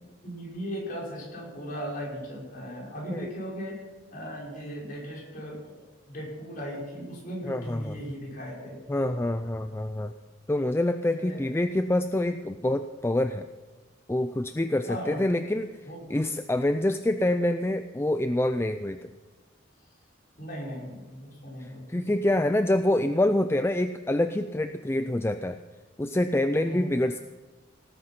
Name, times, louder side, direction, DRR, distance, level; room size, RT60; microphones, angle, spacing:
voice 1, 0.2-3.8 4.1-8.8 11.1-11.4 14.8-15.2 15.8-16.2 20.4-22.1 26.6-27.0, equal, 45° left, -3 dB, 5.6 m, -37 dB
voice 2, 7.4-7.9 8.9-10.1 10.5-13.5 14.1-15.7 16.1-19.1 21.9-25.6 26.0-27.2, left 1 dB, 15° left, 9 dB, 0.4 m, -26 dB
18.0 x 9.7 x 5.9 m, 1.3 s
head